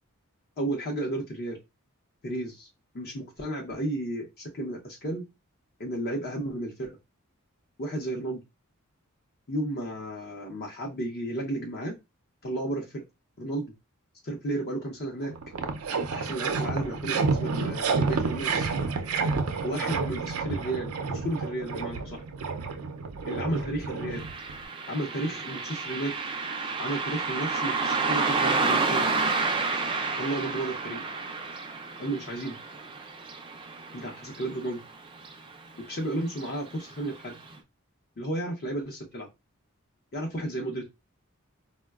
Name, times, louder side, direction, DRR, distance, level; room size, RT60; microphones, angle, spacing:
voice 1, 0.6-1.6 2.2-2.7 2.9-5.2 5.8-7.0 7.8-8.4 9.5-12.0 12.4-13.0 13.4-13.7 14.2-15.3 16.1-18.7 19.6-22.2 23.2-24.2 24.9-26.2 26.8-29.1 30.1-31.0 32.0-32.6 33.9-34.8 35.8-37.4 38.2-39.3 40.1-40.9, right 1 dB, 45° left, -1 dB, 0.7 m, -33 dB
sound 1, 14.9-15.0 15.2-24.6, right 4 dB, 85° right, 0.5 m, -30 dB
Car passing by, 24.1-34.9 35.2-35.3 36.3-36.5 36.9-37.0 37.5-37.6, right 4 dB, 25° right, 0.4 m, -30 dB
4.5 x 2.2 x 2.3 m, 0.23 s
head